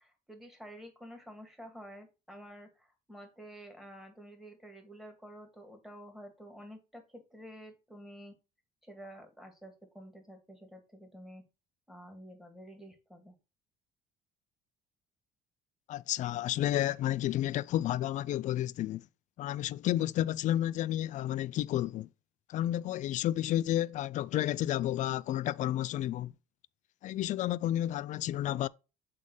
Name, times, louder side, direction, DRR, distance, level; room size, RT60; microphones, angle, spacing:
voice 1, 0.0-8.3 8.8-11.4 11.9-13.3, equal, ahead, 2.0 m, -50 dB
voice 2, 15.9-19.0 19.4-22.1 22.5-26.3 27.0-28.7, left 13 dB, 50° left, 0.4 m, -31 dB
7.5 x 3.7 x 3.9 m
cardioid pair, 115°, 16 cm